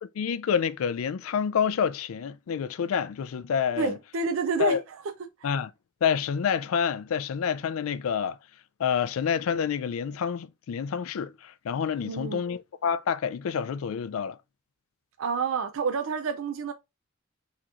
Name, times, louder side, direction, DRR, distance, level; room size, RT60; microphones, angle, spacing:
voice 1, 0.0-4.0 4.6-4.8 5.4-5.7 6.0-8.4 8.8-14.4, left 7 dB, 80° left, 0.4 m, -28 dB
voice 2, 3.8-5.0 12.0-12.4 15.2-16.7, right 5 dB, 70° right, 0.4 m, -29 dB
4.2 x 2.9 x 2.4 m
head